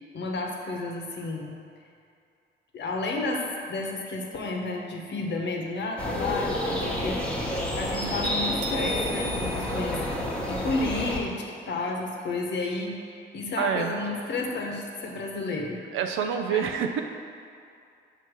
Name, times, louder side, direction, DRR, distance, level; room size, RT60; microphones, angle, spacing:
voice 1, 0.1-1.6 2.7-7.2 7.8-10.0 10.5-15.8 16.5-16.6, left 3 dB, 60° left, 1 dB, 1.1 m, -31 dB
sound 1, 6.0-11.2, left 1 dB, 5° left, 1.2 m, -29 dB
sound 2, 8.6-10.8, equal, 65° right, 1.0 m, -37 dB
voice 2, 13.6-14.0 15.9-17.0, right 7 dB, 85° right, 5 dB, 0.6 m, -27 dB
8.0 x 2.9 x 6.1 m, 2.5 s
cardioid pair, 90°, 20 cm